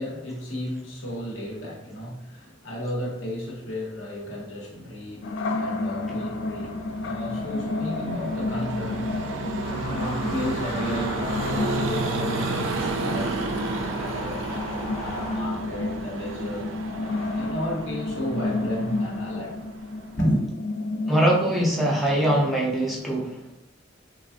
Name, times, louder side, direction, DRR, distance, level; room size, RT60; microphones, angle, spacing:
voice 1, 0.0-9.1 9.7-14.6 14.9-16.7 17.3-19.6 20.2-20.4, equal, 90° left, -2 dB, 0.8 m, -33 dB
sound 1, 5.2-23.0, left 2 dB, 70° left, 0.3 m, -32 dB
Vehicle, 5.7-20.4, right 3 dB, 75° right, 0.3 m, -32 dB
sound 2, 9.6-15.4, left 1 dB, 35° left, 0.7 m, -36 dB
voice 2, 21.1-23.4, right 1 dB, ahead, -4 dB, 0.4 m, -22 dB
3.3 x 2.0 x 2.5 m, 0.83 s
head